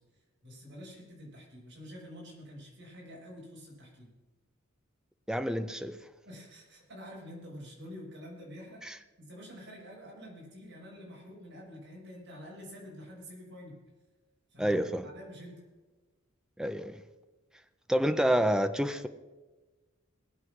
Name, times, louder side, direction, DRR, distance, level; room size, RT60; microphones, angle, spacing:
voice 1, 0.4-4.1 6.2-8.8 9.2-13.8 14.5-15.6 17.9-18.4, equal, 55° right, 6.1 m, -48 dB
voice 2, 5.3-6.0 8.8-9.0 14.6-15.1 16.6-17.0 17.9-19.1, equal, 5° right, 0.7 m, -28 dB
21.0 x 7.7 x 6.3 m
head